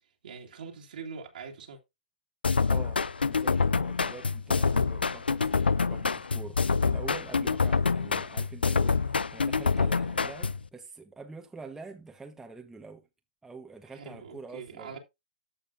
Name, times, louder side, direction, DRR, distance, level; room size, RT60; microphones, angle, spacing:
voice 1, 0.2-1.8 13.9-15.0, right 5 dB, 65° right, 2.2 m, -43 dB
sound 1, 2.4-10.7, left 5 dB, 80° left, 0.5 m, -26 dB
voice 2, 2.7-13.1 13.4-14.9, right 4 dB, 5° right, 1.1 m, -46 dB
14.0 x 5.3 x 2.6 m
figure-of-eight pair, 120°, 5 cm